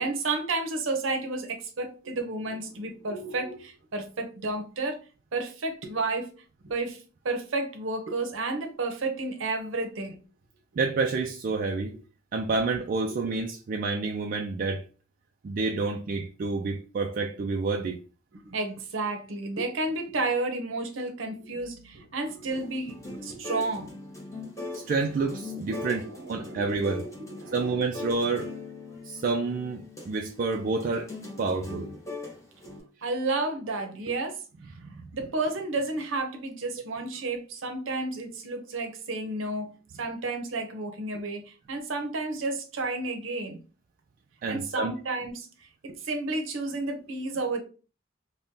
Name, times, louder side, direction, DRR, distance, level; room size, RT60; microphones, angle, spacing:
voice 1, 0.0-5.0 5.3-6.3 6.6-10.2 13.1-13.2 18.3-23.9 25.5-27.8 32.6-34.4 35.1-39.7 40.0-43.6 44.5-45.5 45.8-47.6, right 3 dB, 70° right, 0.7 m, -32 dB
voice 2, 10.8-12.0 12.3-14.8 15.4-18.0 24.7-27.0 27.5-28.5 29.1-31.1 31.4-31.9 34.8-35.1 44.4-44.9, right 3 dB, 45° right, 0.3 m, -29 dB
sound 1, 22.5-32.8, left 3 dB, 15° left, 0.9 m, -40 dB
2.6 x 2.2 x 3.5 m
head